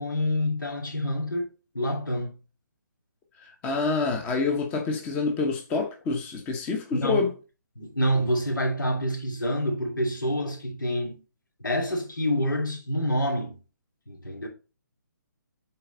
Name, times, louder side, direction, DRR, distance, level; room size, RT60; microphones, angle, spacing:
voice 1, 0.0-2.4 6.9-7.3 7.7-11.2 11.6-13.6 14.1-14.5, equal, 75° left, 2.9 m, -27 dB
voice 2, 3.4-7.3, left 4 dB, 15° left, 1.0 m, -27 dB
8.8 x 4.1 x 3.9 m
figure-of-eight pair, 140°, 11 cm